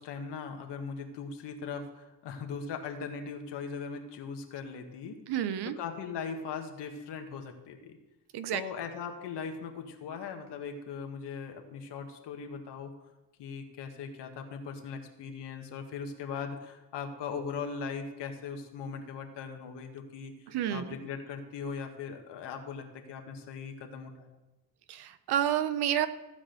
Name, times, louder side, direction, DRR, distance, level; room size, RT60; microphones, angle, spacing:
voice 1, 0.0-5.2 5.6-8.0 8.5-12.9 13.4-20.3 20.7-24.3, left 6 dB, 75° left, 4 dB, 1.8 m, -39 dB
voice 2, 5.3-5.8 8.3-8.6 20.5-20.8 24.9-26.1, right 10 dB, 65° right, 13 dB, 0.9 m, -29 dB
15.0 x 5.0 x 7.8 m, 1.0 s
cardioid pair, 100°, 42 cm